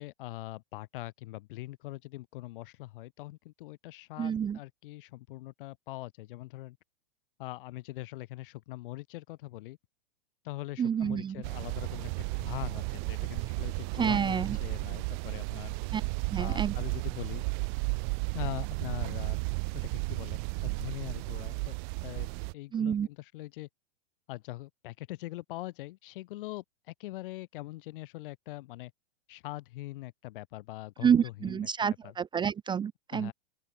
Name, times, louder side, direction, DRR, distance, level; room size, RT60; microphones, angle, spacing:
voice 1, 0.0-6.8 7.4-9.8 10.4-15.8 16.4-17.4 18.3-19.4 19.7-21.8 22.0-22.3 22.5-23.7 24.3-28.9 29.3-31.7 32.0-32.1 33.1-33.3, left 18 dB, 60° left, 4.6 m, -42 dB
voice 2, 4.2-4.6 10.8-11.3 14.0-14.6 15.9-16.0 16.3-16.7 22.7-23.1 31.0-33.3, right 7 dB, 15° right, 0.6 m, -28 dB
sound 1, 11.4-22.5, right 35 dB, 50° right, 4.9 m, -34 dB
open air
hypercardioid pair, 110°, 30 cm